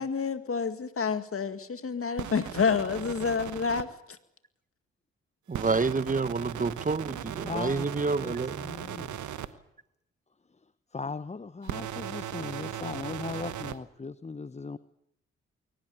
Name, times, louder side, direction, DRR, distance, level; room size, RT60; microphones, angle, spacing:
voice 1, 0.0-4.2, left 5 dB, 45° left, 10 dB, 2.1 m, -29 dB
sound 1, 2.2-3.8 5.5-9.5 11.6-13.8, right 11 dB, 75° right, 1.2 m, -38 dB
voice 2, 5.5-8.7, right 4 dB, 25° right, 16 dB, 1.0 m, -29 dB
voice 3, 7.4-8.4 8.6-9.2 10.9-14.8, left 4 dB, 20° left, 15 dB, 0.8 m, -38 dB
22.0 x 18.0 x 9.2 m, 0.79 s
supercardioid pair, 45°, 30 cm